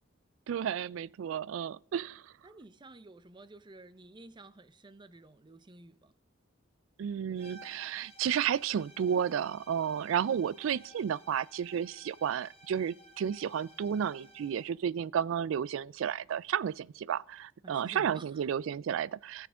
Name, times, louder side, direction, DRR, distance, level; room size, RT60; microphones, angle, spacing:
voice 1, 0.5-2.3 7.0-19.5, right 8 dB, 85° right, 0.3 m, -32 dB
voice 2, 2.4-6.1 17.6-18.3, right 2 dB, 25° right, 0.5 m, -52 dB
sound 1, 7.4-14.8, right 1 dB, 30° left, 1.2 m, -56 dB
17.5 x 7.2 x 3.6 m
head